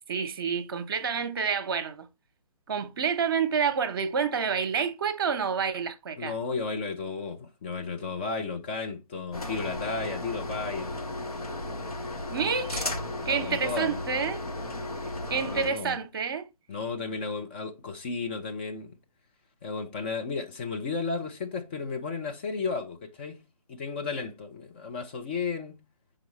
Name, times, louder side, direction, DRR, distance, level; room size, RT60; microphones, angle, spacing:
voice 1, 0.1-2.1 2.7-6.3 12.3-12.9 13.3-14.4 15.3-16.5, right 6 dB, 40° right, 0.9 m, -28 dB
voice 2, 6.2-11.0 13.2-14.0 15.3-16.0 16.7-18.9 19.6-23.4 23.7-25.8, left 4 dB, 15° left, 0.5 m, -33 dB
sound 1, 9.3-15.7, left 2 dB, 75° left, 1.7 m, -35 dB
6.8 x 4.9 x 3.1 m
figure-of-eight pair, 140°, 19 cm